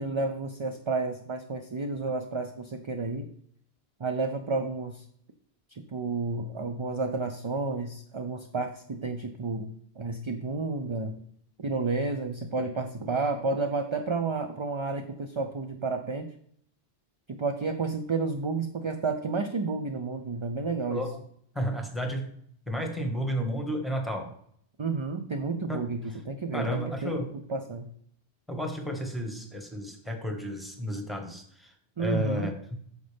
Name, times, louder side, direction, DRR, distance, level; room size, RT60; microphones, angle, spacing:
voice 1, 0.0-3.3 4.0-5.0 5.7-9.7 10.0-11.2 11.6-16.3 17.3-21.0 24.8-27.2 27.5-27.9 32.0-32.5, right 3 dB, 35° right, 6 dB, 0.5 m, -31 dB
voice 2, 20.9-21.2 21.5-22.3 22.7-24.3 25.7-25.8 26.5-27.3 28.5-31.7 32.0-32.8, equal, ahead, 3 dB, 1.5 m, -32 dB
9.4 x 6.6 x 3.4 m, 0.64 s
omnidirectional pair, 1.1 m